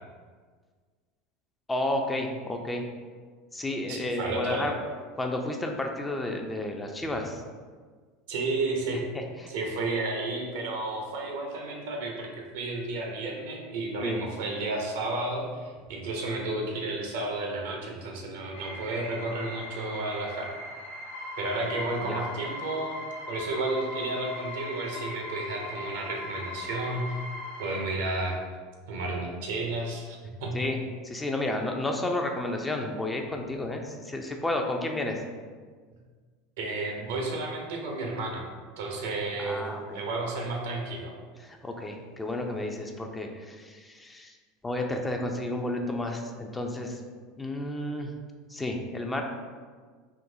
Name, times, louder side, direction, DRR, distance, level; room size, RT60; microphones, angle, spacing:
voice 1, 1.7-2.8 3.5-4.7 5.2-7.4 9.1-9.5 14.0-14.2 22.1-22.2 30.5-30.8 31.0-35.2 39.4-40.0 41.4-44.3 44.6-47.0 47.4-48.1 48.5-49.2, left 1 dB, 15° left, 2 dB, 0.4 m, -31 dB
voice 2, 3.9-4.7 8.3-9.0 9.5-12.3 12.5-20.5 21.4-23.0 23.3-27.1 27.6-28.4 28.9-30.5 36.6-38.5 38.8-41.1, right 2 dB, 70° right, 0 dB, 0.7 m, -32 dB
sound 1, 18.5-27.8, left 2 dB, 85° left, 0.7 m, -39 dB
3.7 x 2.6 x 2.6 m, 1.5 s
hypercardioid pair, 80°, 0 cm